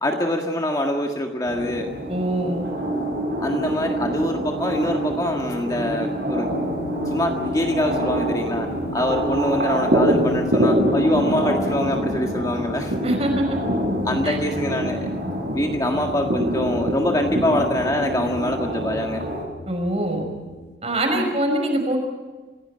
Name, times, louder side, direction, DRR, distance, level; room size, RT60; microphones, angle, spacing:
voice 1, 0.0-1.9 3.4-6.5 7.1-8.7 8.9-12.9 14.0-15.1 15.5-19.2 21.1-21.3, left 1 dB, 20° left, 2 dB, 1.7 m, -24 dB
sound 1, 1.5-19.4, right 1 dB, 65° right, 6.3 m, -25 dB
voice 2, 2.1-2.7 13.0-13.6 14.2-14.4 19.7-20.3 20.8-22.0, right 1 dB, 35° right, 3 dB, 5.4 m, -23 dB
sound 2, 6.5-20.8, left 2 dB, 80° left, 1.4 m, -37 dB
26.5 x 16.5 x 8.6 m, 1.3 s
head